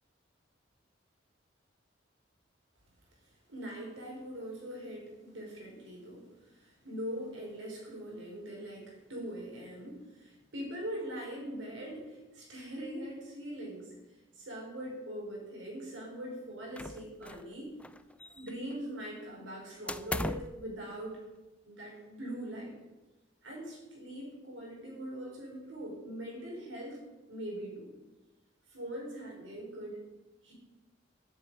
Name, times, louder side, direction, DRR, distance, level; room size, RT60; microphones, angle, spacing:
voice 1, 3.5-13.9 14.4-17.7 18.4-21.2 21.6-22.7 23.4-27.0 27.3-27.9 28.7-30.0 30.4-30.5, equal, 85° right, -2 dB, 5.3 m, -42 dB
sound 1, 16.8-17.5 17.8-18.7 19.9-20.6, left 1 dB, 5° left, 0.3 m, -38 dB
9.4 x 8.3 x 9.2 m, 1.1 s
head